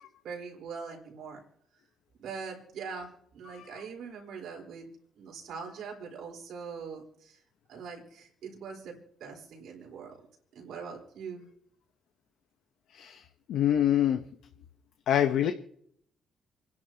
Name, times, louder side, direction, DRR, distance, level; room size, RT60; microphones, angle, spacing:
voice 1, 0.2-1.4 2.2-4.9 5.2-7.4 7.7-10.2 10.5-11.5, right 5 dB, 80° right, 0 dB, 3.9 m, -42 dB
voice 2, 13.5-14.2 15.1-15.5, left 11 dB, 80° left, 7 dB, 0.8 m, -25 dB
29.0 x 10.5 x 2.9 m, 0.67 s
cardioid pair, 145°, 0 cm